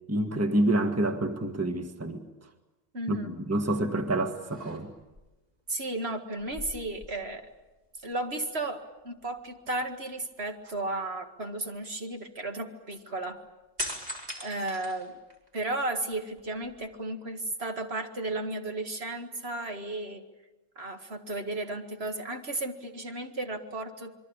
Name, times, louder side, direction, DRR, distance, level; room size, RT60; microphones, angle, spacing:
voice 1, 0.1-2.2 3.1-4.9, right 1 dB, 10° right, 6 dB, 1.5 m, -28 dB
voice 2, 2.9-3.3 5.7-7.4 8.0-13.4 14.4-15.2 15.5-20.2 20.8-24.1, right 2 dB, 55° right, 5 dB, 2.2 m, -34 dB
sound 1, 3.7-4.0 4.4-5.2 6.4-7.7 8.0-8.1 13.8-15.6 16.1-17.0, equal, 30° right, 4.1 m, -40 dB
27.0 x 22.5 x 8.8 m, 1.1 s
omnidirectional pair, 1.3 m